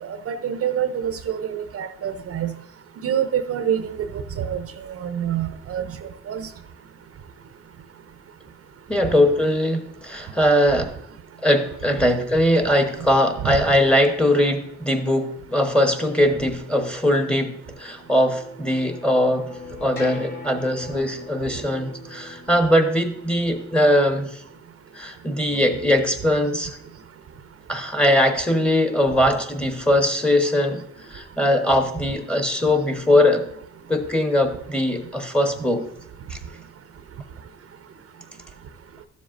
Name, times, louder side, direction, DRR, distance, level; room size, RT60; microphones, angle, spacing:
voice 1, 0.0-2.5 3.0-3.9 4.4-5.8 6.3-6.5 13.4-13.5, right 9 dB, 50° right, 10 dB, 0.6 m, -26 dB
voice 2, 8.9-10.9 11.4-17.5 17.8-19.5 19.8-24.4 24.9-26.8 27.7-30.8 31.1-33.4 33.9-35.8 36.3-36.4, left 1 dB, 5° left, 6 dB, 1.0 m, -20 dB
sound 1, 17.6-23.9, left 2 dB, 35° left, 3.0 m, -41 dB
12.5 x 7.2 x 2.5 m, 0.71 s
cardioid pair, 90°, 30 cm